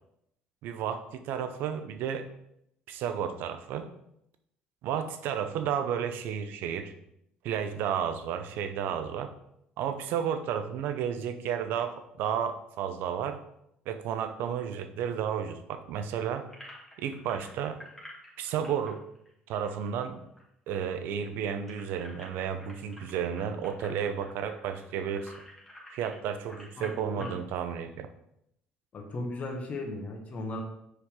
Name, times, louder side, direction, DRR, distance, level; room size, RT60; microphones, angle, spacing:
voice 1, 0.6-2.3 2.9-3.9 4.8-6.9 7.4-9.3 9.8-13.4 13.9-16.5 17.0-17.8 18.4-19.0 19.5-20.2 20.7-25.3 25.9-28.1, right 8 dB, 70° right, 9 dB, 0.7 m, -32 dB
sound 1, 16.5-20.4 20.7-20.8 21.1-27.4, left 1 dB, 5° left, 2.3 m, -50 dB
voice 2, 26.8-27.4 28.9-30.6, left 2 dB, 40° left, 2 dB, 1.6 m, -36 dB
6.5 x 4.7 x 3.7 m, 0.77 s
supercardioid pair, 80°, 4 cm